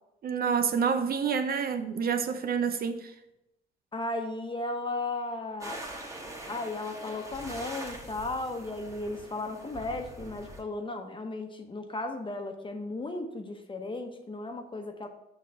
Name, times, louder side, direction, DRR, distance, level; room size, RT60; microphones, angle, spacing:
voice 1, 0.2-3.1, right 6 dB, 50° right, 0.5 m, -28 dB
voice 2, 3.9-5.8 6.5-15.1, left 2 dB, 25° left, 0.9 m, -35 dB
sound 1, 5.6-10.6, right 1 dB, 15° right, 1.2 m, -43 dB
6.5 x 3.1 x 5.6 m
cardioid pair, 90°, 20 cm